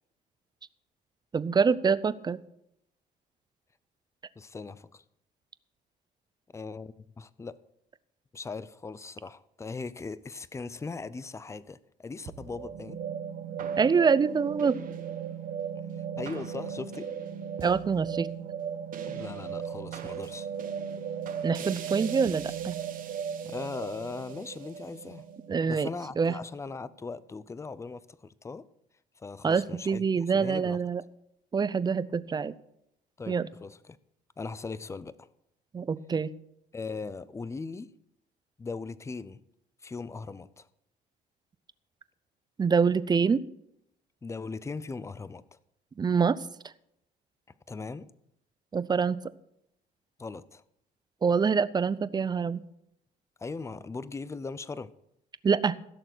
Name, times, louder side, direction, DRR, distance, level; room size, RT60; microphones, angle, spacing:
voice 1, 1.3-2.4 13.8-14.8 17.6-18.3 21.4-22.7 25.5-25.9 26.2-26.3 29.4-31.0 31.5-32.5 33.3-33.5 35.7-36.3 42.6-43.4 46.0-46.4 48.7-49.2 51.2-52.6 55.4-55.8, right 5 dB, 25° right, 0.6 m, -25 dB
voice 2, 4.4-5.0 6.5-7.6 8.3-13.0 16.2-17.1 19.1-20.5 23.4-25.3 25.7-28.7 29.2-30.8 33.2-34.0 34.4-35.3 36.7-38.0 38.6-39.4 39.8-40.7 44.2-45.6 47.7-48.1 50.2-50.6 53.4-54.9, left 4 dB, 15° left, 0.6 m, -39 dB
sound 1, 12.3-26.7, right 7 dB, 55° right, 1.3 m, -37 dB
16.0 x 6.8 x 6.1 m
cardioid pair, 110°, 17 cm